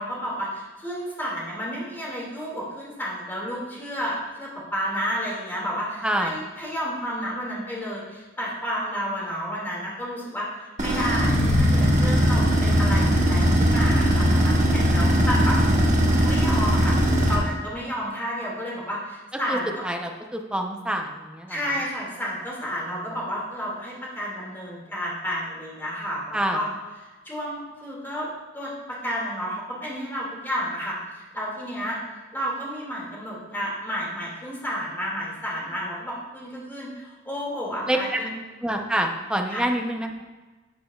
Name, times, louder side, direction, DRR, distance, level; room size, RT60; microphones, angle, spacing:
voice 1, 0.0-15.8 16.2-19.7 21.5-26.7 27.2-28.3 28.5-32.0 32.3-38.3 39.5-39.7, equal, 10° left, -5 dB, 2.1 m, -31 dB
voice 2, 6.0-6.4 19.5-19.6 19.8-21.8 22.9-23.1 26.3-26.6 37.9-38.2 38.6-40.3, right 1 dB, 5° right, 2 dB, 0.6 m, -27 dB
sound 1, 10.8-17.4, equal, 35° right, 1.3 m, -20 dB
11.5 x 6.7 x 2.3 m, 1.3 s
head